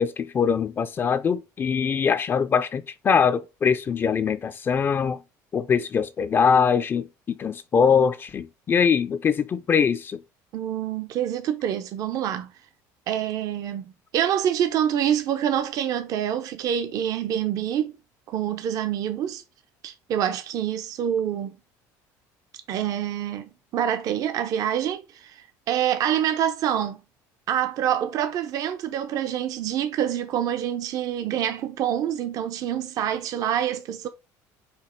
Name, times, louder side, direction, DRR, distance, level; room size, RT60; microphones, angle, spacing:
voice 1, 0.0-5.2 5.5-10.2, left 6 dB, 30° left, 0.4 m, -22 dB
voice 2, 10.5-12.5 13.1-17.9 18.3-19.4 19.8-21.6 22.7-27.0 27.5-34.1, right 10 dB, 50° right, 0.5 m, -26 dB
5.1 x 2.4 x 4.3 m
cardioid pair, 135°, 8 cm